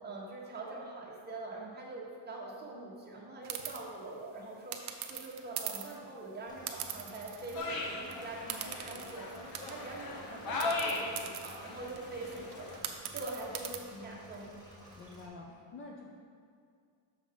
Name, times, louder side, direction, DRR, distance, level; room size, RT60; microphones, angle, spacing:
voice 1, 0.0-14.5, right 2 dB, 20° right, -3 dB, 1.1 m, -44 dB
sound 1, 3.4-3.8 4.7-6.0 6.7-7.7 8.0-8.1 8.5-10.0 10.6-13.8, right 10 dB, 60° right, 0.7 m, -42 dB
Engine / Mechanisms, 6.5-15.3, right 1 dB, 10° left, 1.2 m, -54 dB
sound 2, 7.6-12.8, left 2 dB, 50° left, 0.9 m, -38 dB
voice 2, 15.0-16.1, left 3 dB, 30° left, -1 dB, 0.4 m, -48 dB
6.6 x 5.0 x 5.1 m, 2.3 s
cardioid pair, 170°, 46 cm